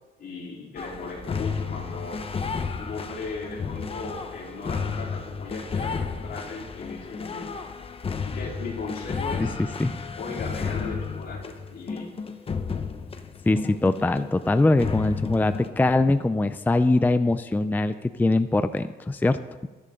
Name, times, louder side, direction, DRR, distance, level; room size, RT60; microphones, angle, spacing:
voice 1, 0.2-2.3 2.8-7.6 8.2-9.6 10.2-12.3, left 3 dB, 65° left, -2 dB, 4.1 m, -37 dB
sound 1, 0.8-14.5 14.8-15.7, left 5 dB, 35° left, 1.0 m, -32 dB
voice 2, 9.4-10.1 13.4-19.7, left 2 dB, 10° left, 11 dB, 0.4 m, -22 dB
22.0 x 11.0 x 3.8 m, 1.2 s
cardioid pair, 125°, 18 cm